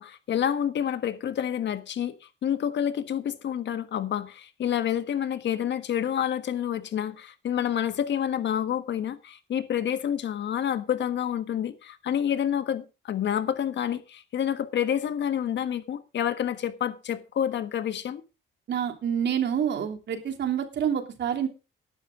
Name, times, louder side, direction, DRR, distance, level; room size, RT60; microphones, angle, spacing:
voice 1, 0.0-18.2, left 9 dB, 65° left, 1.5 m, -28 dB
voice 2, 18.7-21.5, right 8 dB, 60° right, 3.0 m, -27 dB
14.0 x 12.0 x 3.8 m
cardioid pair, 90°, 20 cm